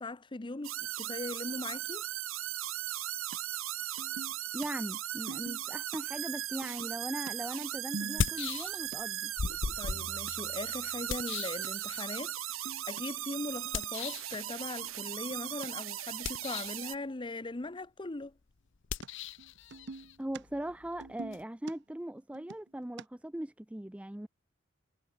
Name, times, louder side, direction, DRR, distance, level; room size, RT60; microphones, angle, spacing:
voice 1, 0.0-2.0 9.8-18.3, left 2 dB, 25° left, 0.7 m, -40 dB
sound 1, 0.6-17.0, right 13 dB, 85° right, 1.2 m, -38 dB
sound 2, 3.3-3.4 4.0-4.7 5.3-6.0 6.6-8.6 8.9-9.0 9.4-9.5 9.8-10.3 10.8-11.1 11.6-11.7 12.2-12.3 12.5-13.0 13.5-13.8 14.3-14.4 14.8-15.7 19.0-19.1 19.4-20.4 20.7-23.0, right 3 dB, 60° right, 0.7 m, -46 dB
voice 2, 4.5-9.3 20.2-24.3, right 1 dB, 5° right, 0.4 m, -39 dB
sound 3, 7.0-7.1 8.0-9.0 9.4-12.2 13.7-14.4 16.1-16.9 18.8-21.4, left 5 dB, 65° left, 0.7 m, -38 dB
head